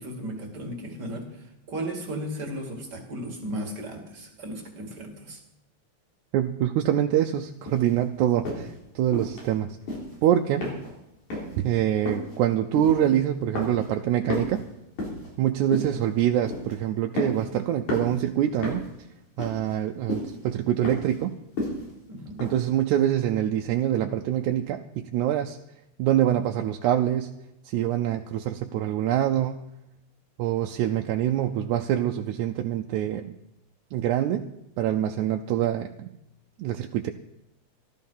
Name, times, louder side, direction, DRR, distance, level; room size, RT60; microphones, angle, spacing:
voice 1, 0.0-5.4 22.1-22.4, right 1 dB, 35° right, 1 dB, 2.5 m, -35 dB
voice 2, 6.3-9.8 10.2-10.8 11.6-14.6 15.4-18.8 19.4-21.3 22.4-25.6 26.0-27.4 27.7-29.7 30.4-33.4 33.9-34.5 34.8-36.1 36.6-37.1, right 11 dB, 85° right, 4 dB, 2.0 m, -25 dB
sound 1, 7.7-7.9 8.4-8.7 9.1-9.5 9.8-10.2 10.6-11.0 11.3-11.6 12.1-12.4 12.8-13.2 13.6-14.0 14.3-15.3 15.7-16.1 16.4-16.7 17.2-17.5 17.9-18.2 18.6-18.9 19.4-19.8 20.1-20.4 20.8-21.2 21.6-21.9 22.4-22.5, left 1 dB, 75° left, 5.2 m, -32 dB
14.0 x 13.0 x 5.6 m, 0.84 s
omnidirectional pair, 3.3 m